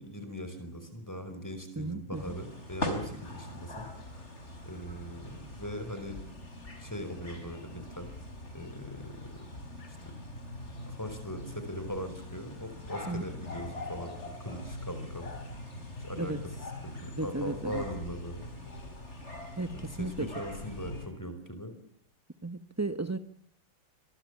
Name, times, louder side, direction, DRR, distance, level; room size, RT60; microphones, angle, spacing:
voice 1, 0.0-4.2 4.6-6.2 6.8-8.1 8.5-9.4 9.9-10.1 10.9-15.3 16.0-16.3 16.8-18.5 19.7-21.7, equal, 10° left, 9 dB, 5.1 m, -40 dB
voice 2, 1.8-2.3 13.1-13.2 16.2-16.4 17.2-17.8 19.6-20.3 22.4-23.2, right 2 dB, 20° right, 11 dB, 0.4 m, -34 dB
sound 1, 2.1-21.1, left 1 dB, 35° left, 4.6 m, -42 dB
26.5 x 22.5 x 8.3 m, 0.65 s
omnidirectional pair, 2.2 m